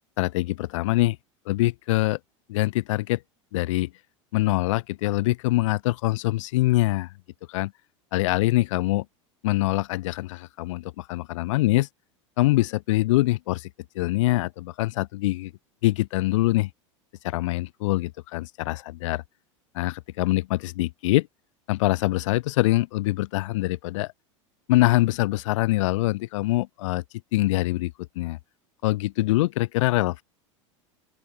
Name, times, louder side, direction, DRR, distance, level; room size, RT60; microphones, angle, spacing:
voice 1, 0.2-1.2 1.5-2.2 2.5-3.2 3.5-3.9 4.3-7.1 7.5-7.7 8.1-9.1 9.4-11.9 12.4-13.7 14.0-15.5 15.8-16.7 17.2-19.2 19.7-21.3 21.7-24.1 24.7-27.0 27.3-28.4 28.8-30.2, left 18 dB, 75° left, 1.9 m, -24 dB
open air
hypercardioid pair, 100°, 16 cm